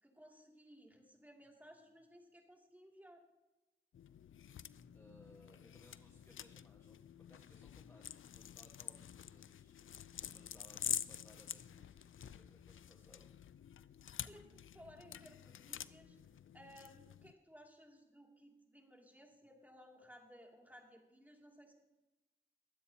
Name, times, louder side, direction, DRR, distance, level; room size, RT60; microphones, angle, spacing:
voice 1, 0.0-3.2 14.2-16.2 16.5-21.7, equal, 10° right, 1 dB, 2.5 m, -59 dB
sound 1, 3.9-17.3, left 9 dB, 75° left, 0.4 m, -48 dB
voice 2, 4.9-7.0 7.3-9.8 10.3-13.3, left 1 dB, 10° left, 0 dB, 1.4 m, -65 dB
22.5 x 8.3 x 2.8 m, 1.1 s
cardioid pair, 50°, 21 cm